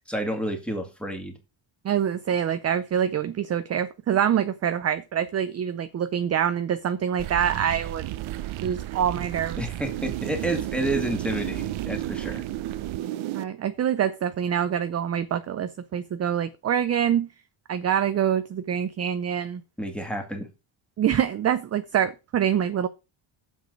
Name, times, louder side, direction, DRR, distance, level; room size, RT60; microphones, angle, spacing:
voice 1, 0.1-1.4 9.6-12.4 19.8-20.5, right 1 dB, ahead, 2.2 m, -30 dB
voice 2, 1.8-8.1 8.6-9.6 13.3-17.3 17.7-19.6 21.0-22.9, right 9 dB, 30° right, 0.5 m, -25 dB
sound 1, 7.2-13.4, right 14 dB, 70° right, 0.9 m, -32 dB
9.2 x 7.4 x 5.3 m
cardioid pair, 170°, 50 cm